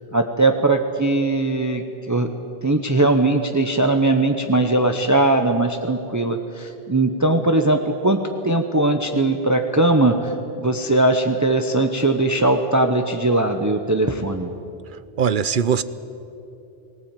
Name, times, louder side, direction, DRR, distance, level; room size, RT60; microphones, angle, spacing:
voice 1, 0.1-2.3 2.6-14.5, right 2 dB, 20° right, 5 dB, 0.9 m, -20 dB
voice 2, 15.2-15.8, right 7 dB, 55° right, 15 dB, 0.8 m, -20 dB
19.0 x 18.5 x 9.1 m, 2.8 s
omnidirectional pair, 1.0 m